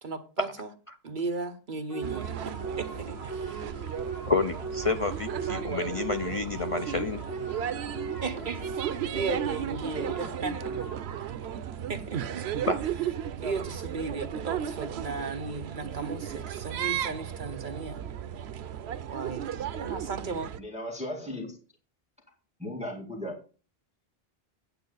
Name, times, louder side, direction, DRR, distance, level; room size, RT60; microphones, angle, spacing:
voice 1, 0.0-0.7 1.0-3.8 8.2-10.9 11.9-12.4 13.4-18.0 19.1-20.5, right 4 dB, 50° right, 1.3 m, -36 dB
sound 1, 1.9-11.3, right 3 dB, 80° left, 5.6 m, -39 dB
sound 2, 2.0-20.6, right 9 dB, 90° right, 0.9 m, -35 dB
voice 2, 4.3-7.2 12.7-12.8, left 4 dB, 40° left, 0.6 m, -29 dB
voice 3, 20.6-21.6 22.6-23.4, left 1 dB, 5° right, 2.0 m, -36 dB
9.0 x 8.7 x 4.0 m
omnidirectional pair, 1.0 m